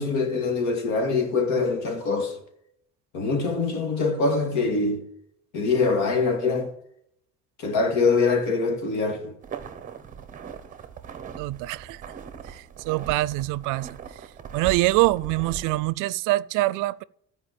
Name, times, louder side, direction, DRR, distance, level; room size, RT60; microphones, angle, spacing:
voice 1, 0.0-2.4 3.1-5.0 5.5-6.7 7.6-9.3, left 4 dB, 65° left, 2.3 m, -24 dB
sound 1, 9.4-15.9, right 7 dB, 25° right, 0.9 m, -39 dB
voice 2, 11.4-12.0 12.5-13.9 14.5-17.0, right 18 dB, 85° right, 0.5 m, -24 dB
14.0 x 4.9 x 8.4 m
cardioid pair, 170°, 31 cm